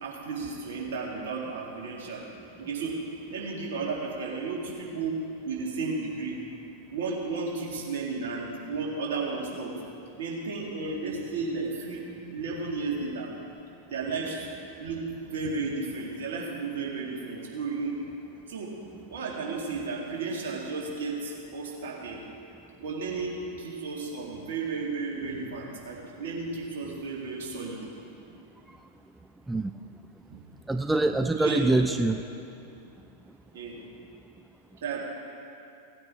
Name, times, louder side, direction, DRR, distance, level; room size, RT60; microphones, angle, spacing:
voice 1, 0.0-2.2 2.6-3.0 3.3-5.2 5.4-6.4 6.9-9.8 10.2-13.3 13.9-14.5 14.8-18.0 18.5-18.7 19.1-22.2 22.8-27.8 31.3-31.8 33.5-33.8 34.8-35.1, right 4 dB, 60° right, -2 dB, 2.2 m, -33 dB
voice 2, 30.7-32.2, right 2 dB, 5° right, 7 dB, 0.3 m, -24 dB
17.0 x 8.9 x 3.5 m, 2.7 s
figure-of-eight pair, 90°, 0 cm